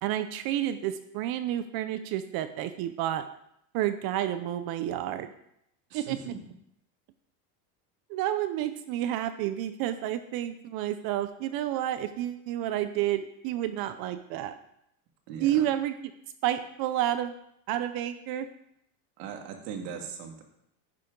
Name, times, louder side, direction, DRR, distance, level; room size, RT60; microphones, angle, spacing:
voice 1, 0.0-3.2 3.7-5.3 5.9-6.2 8.1-14.6 15.4-15.9 16.4-17.3 17.7-18.5, right 12 dB, 50° right, 11 dB, 0.7 m, -30 dB
voice 2, 5.9-6.4 15.3-15.7 19.2-20.4, right 7 dB, 90° right, 3 dB, 2.2 m, -39 dB
10.5 x 9.9 x 3.8 m, 0.77 s
cardioid pair, 145°, 48 cm